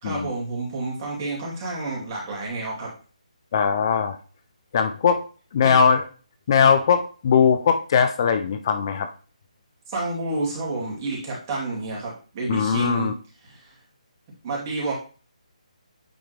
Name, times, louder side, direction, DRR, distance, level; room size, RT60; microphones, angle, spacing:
voice 1, 0.0-2.9 5.6-5.8 9.9-13.1 13.4-13.7 14.4-14.9, right 3 dB, 25° right, -3 dB, 2.3 m, -29 dB
voice 2, 3.5-4.2 4.7-5.2 5.5-6.0 6.5-9.1 12.5-13.1, left 6 dB, 35° left, 8 dB, 0.5 m, -20 dB
8.8 x 3.5 x 3.3 m, 0.37 s
figure-of-eight pair, 160°, 4 cm